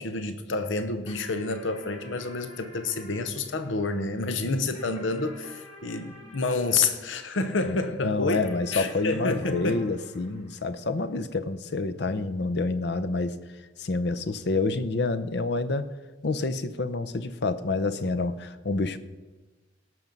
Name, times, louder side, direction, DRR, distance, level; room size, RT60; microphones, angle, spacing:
voice 1, 0.0-8.4 8.7-9.8, left 3 dB, 90° left, 9 dB, 0.9 m, -29 dB
sound 1, 1.1-7.8 8.4-11.3, left 1 dB, 30° left, 1.9 m, -50 dB
voice 2, 8.0-13.4 13.8-15.9 16.2-19.0, left 3 dB, 60° left, 13 dB, 0.6 m, -28 dB
17.5 x 6.1 x 5.3 m, 1.2 s
head